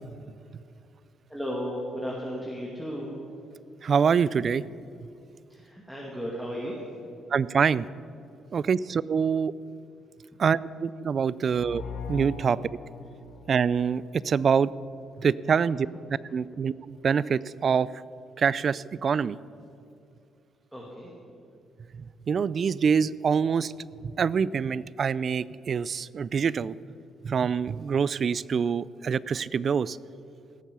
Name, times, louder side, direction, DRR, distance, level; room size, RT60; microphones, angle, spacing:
voice 1, 1.3-3.1 5.5-6.8 20.7-21.1, equal, 5° right, -3 dB, 2.3 m, -34 dB
voice 2, 3.8-4.6 7.3-7.9 8.5-9.5 10.4-11.8 12.1-12.6 13.5-14.7 15.2-15.9 16.3-17.9 18.4-19.4 21.9-23.7 24.0-26.7 27.2-30.0, right 6 dB, 50° right, 20 dB, 0.3 m, -25 dB
sound 1, 11.5-14.3, left 4 dB, 65° left, 1.8 m, -40 dB
17.5 x 7.4 x 6.8 m, 2.6 s
cardioid pair, 90°, 0 cm